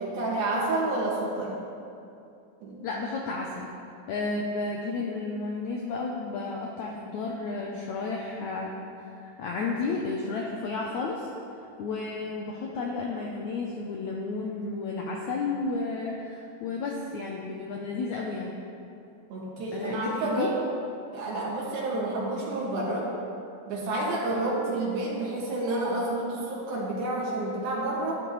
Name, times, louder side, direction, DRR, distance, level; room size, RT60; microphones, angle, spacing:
voice 1, 0.0-1.6 2.6-2.9 19.3-20.6 21.1-23.1 23.7-28.2, right 2 dB, 75° right, -5 dB, 3.8 m, -29 dB
voice 2, 2.8-3.7 4.1-8.8 9.1-11.3 11.8-18.6 19.7-20.5 24.3-24.6, left 3 dB, 90° left, -1 dB, 1.6 m, -32 dB
13.0 x 10.5 x 3.2 m, 2.6 s
omnidirectional pair, 4.3 m